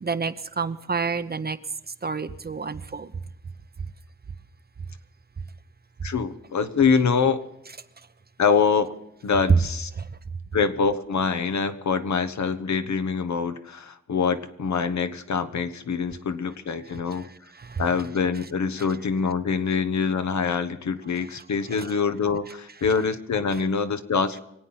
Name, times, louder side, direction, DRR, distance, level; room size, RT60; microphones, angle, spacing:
voice 1, 0.0-1.6 2.0-3.1 17.7-17.8, right 5 dB, 30° right, 11 dB, 0.8 m, -29 dB
voice 2, 6.0-7.4 8.4-8.9 9.2-9.9 10.5-17.3 17.8-24.4, left 5 dB, 70° left, 9 dB, 1.1 m, -25 dB
25.0 x 8.7 x 5.7 m, 0.82 s
cardioid pair, 65°, 30 cm